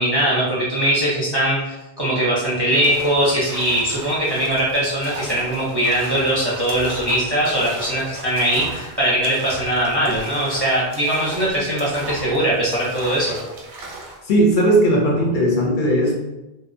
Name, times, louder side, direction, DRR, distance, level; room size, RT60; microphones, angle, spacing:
voice 1, 0.0-13.4, right 1 dB, 30° right, -7 dB, 0.4 m, -21 dB
sound 1, 2.7-14.3, right 2 dB, 85° right, 0.9 m, -36 dB
voice 2, 14.3-16.1, right 1 dB, 60° left, -1 dB, 0.6 m, -17 dB
2.6 x 2.0 x 2.5 m, 0.98 s
omnidirectional pair, 1.1 m